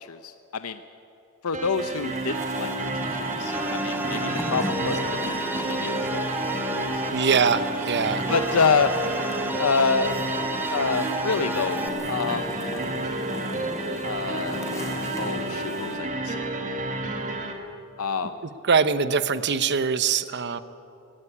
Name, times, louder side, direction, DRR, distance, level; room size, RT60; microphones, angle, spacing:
voice 1, 0.1-0.8 1.4-6.2 6.7-7.5 8.1-8.9 9.5-10.2 10.7-11.8 12.1-12.6 14.0-14.7 15.2-16.5 18.0-18.3, left 5 dB, 80° left, 10 dB, 0.7 m, -27 dB
sound 1, 1.5-17.5, right 2 dB, 35° right, 1.9 m, -30 dB
sound 2, 1.7-16.0, equal, 15° left, 4.1 m, -38 dB
sound 3, 2.3-11.9, right 1 dB, 10° right, 1.0 m, -33 dB
voice 2, 7.1-8.2 18.7-20.6, right 5 dB, 50° right, 13 dB, 0.9 m, -22 dB
18.5 x 17.0 x 9.9 m, 2.8 s
head